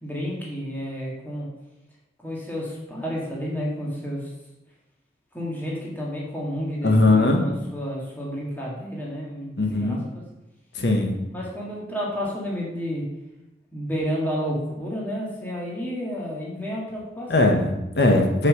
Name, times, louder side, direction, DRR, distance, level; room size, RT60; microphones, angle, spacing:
voice 1, 0.0-1.5 2.2-4.2 5.3-10.2 11.3-13.0 13.7-17.7, equal, 10° left, -4 dB, 1.8 m, -31 dB
voice 2, 6.8-7.4 9.6-10.0 10.8-11.1 17.3-18.5, left 2 dB, 70° left, 2 dB, 1.2 m, -19 dB
5.8 x 5.7 x 6.6 m, 0.94 s
head